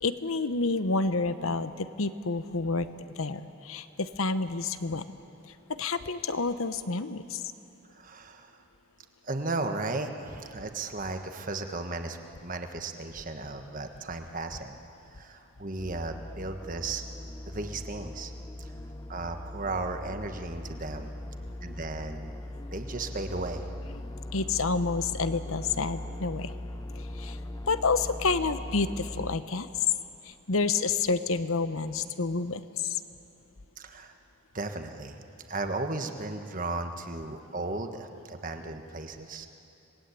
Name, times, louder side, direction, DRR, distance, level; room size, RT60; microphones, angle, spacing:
voice 1, 0.0-2.9 3.2-5.0 5.7-7.5 24.3-26.5 27.0-27.4 27.7-29.9 30.2-33.0, left 4 dB, 65° left, 12 dB, 1.0 m, -29 dB
voice 2, 7.9-8.5 9.2-14.8 15.1-17.1 17.4-18.3 18.6-18.7 19.1-21.1 21.6-22.3 22.7-23.7 33.8-34.1 34.5-35.2 35.5-39.5, right 2 dB, 35° right, 6 dB, 1.4 m, -35 dB
sound 1, 15.8-29.4, left 1 dB, 15° left, 0.8 m, -40 dB
27.0 x 20.0 x 8.4 m, 2.8 s
head